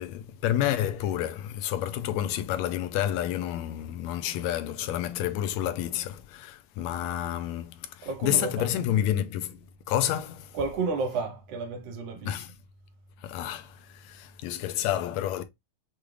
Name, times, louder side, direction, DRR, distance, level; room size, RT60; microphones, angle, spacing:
voice 1, 0.0-9.6 9.9-10.6 12.3-12.5 13.2-15.4, left 11 dB, 80° left, 1.7 m, -29 dB
voice 2, 8.0-8.7 9.1-9.2 10.5-12.3, right 4 dB, 65° right, 1.7 m, -31 dB
6.7 x 2.4 x 3.1 m
omnidirectional pair, 3.4 m